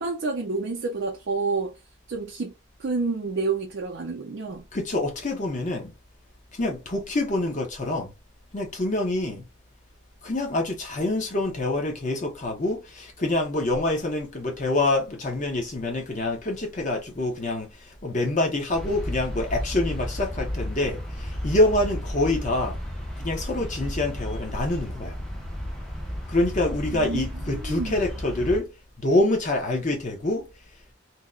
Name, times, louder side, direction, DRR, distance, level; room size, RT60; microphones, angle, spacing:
voice 1, 0.0-1.7 2.1-2.5 2.8-4.6 26.9-28.0, right 4 dB, 55° right, 0.5 m, -29 dB
voice 2, 4.7-5.9 6.5-8.1 8.5-9.4 10.2-22.8 23.2-25.2 26.3-28.7 29.0-30.4, left 2 dB, 35° left, 0.8 m, -26 dB
sound 1, 18.7-28.6, equal, ahead, 0.5 m, -33 dB
2.8 x 2.1 x 3.6 m
head